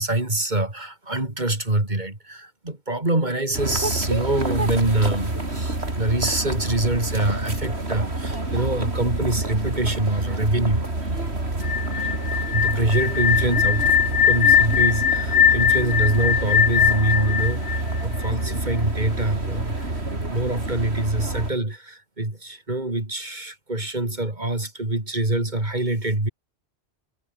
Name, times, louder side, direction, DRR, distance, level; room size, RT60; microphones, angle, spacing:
voice 1, 0.0-10.8 12.5-13.9 14.2-19.9 20.3-26.3, right 2 dB, 40° right, 4.1 m, -25 dB
sound 1, 3.5-21.5, right 2 dB, 75° right, 4.8 m, -28 dB
sound 2, 11.6-18.5, left 8 dB, 85° left, 1.2 m, -20 dB
omnidirectional pair, 1.1 m